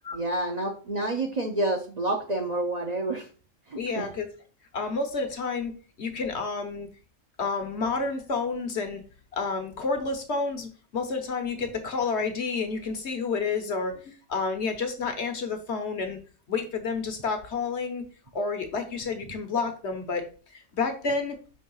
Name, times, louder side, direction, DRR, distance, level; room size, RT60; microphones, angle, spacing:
voice 1, 0.1-3.3 3.7-4.0, right 2 dB, 35° right, 3 dB, 0.8 m, -29 dB
voice 2, 3.7-4.3 4.7-5.7 6.0-6.9 7.4-9.0 9.3-16.2 16.5-18.0 18.3-20.2 20.5-21.4, left 4 dB, 60° left, 6 dB, 1.2 m, -30 dB
5.4 x 3.4 x 5.5 m, 0.37 s
omnidirectional pair, 1.3 m